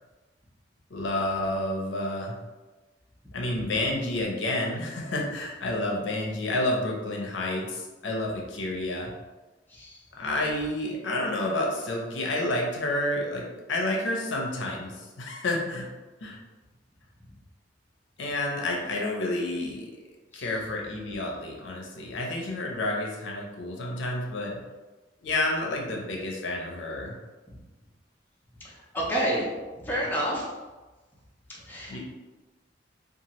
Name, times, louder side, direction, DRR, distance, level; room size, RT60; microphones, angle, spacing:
voice 1, 0.9-2.4 3.3-9.1 10.2-15.9 16.2-16.4 18.2-19.9 20.3-24.6 25.2-27.2 31.9-32.0, left 1 dB, 75° left, -1 dB, 0.6 m, -30 dB
voice 2, 9.7-10.0 20.3-20.5 28.6-29.5 29.8-30.5 31.5-32.0, right 1 dB, 10° left, -5 dB, 0.6 m, -29 dB
2.8 x 2.3 x 2.9 m, 1.2 s
head